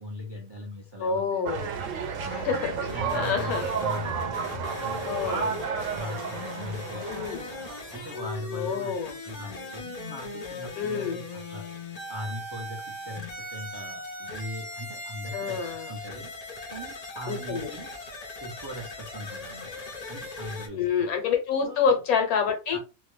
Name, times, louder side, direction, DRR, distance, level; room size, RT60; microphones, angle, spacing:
voice 1, 0.0-1.6 1.9-4.3 4.7-7.3 7.9-9.0 9.2-11.6 12.1-15.6 15.9-17.9 18.4-19.7 20.1-21.1 21.6-22.0 22.7-22.8, equal, 45° right, 0.3 m, -40 dB
voice 2, 1.0-1.7 2.3-2.7 3.1-3.7 5.0-5.5 7.1-7.4 8.5-9.2 10.8-11.2 15.3-15.9 17.3-17.7 20.7-22.8, left 6 dB, 80° left, 1.2 m, -27 dB
sound 1, 1.5-8.3, right 6 dB, 70° right, 0.9 m, -32 dB
sound 2, 2.9-20.7, left 2 dB, 55° left, 0.4 m, -39 dB
2.8 x 2.2 x 3.1 m
omnidirectional pair, 1.5 m